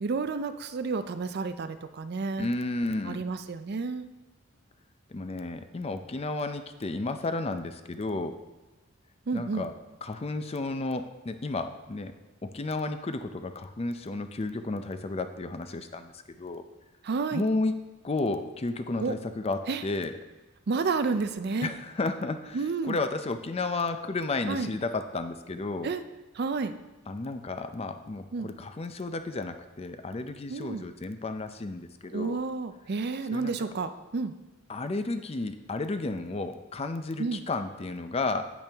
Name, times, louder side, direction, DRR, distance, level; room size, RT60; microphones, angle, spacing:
voice 1, 0.0-2.5 3.0-4.1 9.3-9.7 17.0-17.5 19.0-19.1 19.7-19.8 20.7-21.7 22.5-23.0 24.5-24.7 25.8-26.0 26.3-26.7 28.3-28.5 30.5-30.8 32.1-34.3 37.2-37.4, right 4 dB, 50° right, 10 dB, 0.4 m, -30 dB
voice 2, 2.4-3.2 5.1-8.3 9.3-9.7 10.0-12.1 12.4-16.6 17.3-17.7 18.0-20.2 21.6-25.9 27.1-32.4 33.3-33.5 34.7-38.5, left 3 dB, 30° left, 9 dB, 0.5 m, -32 dB
8.6 x 8.4 x 3.4 m, 1.1 s
head